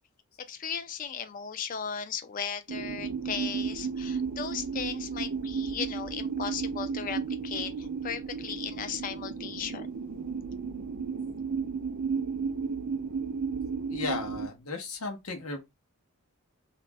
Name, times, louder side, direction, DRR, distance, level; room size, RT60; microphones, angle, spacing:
voice 1, 0.5-9.9, left 7 dB, 35° left, 0.3 m, -36 dB
sound 1, 2.7-14.5, right 5 dB, 90° right, 0.5 m, -33 dB
voice 2, 13.9-15.6, left 4 dB, 75° left, 0.8 m, -35 dB
2.4 x 2.0 x 3.3 m
head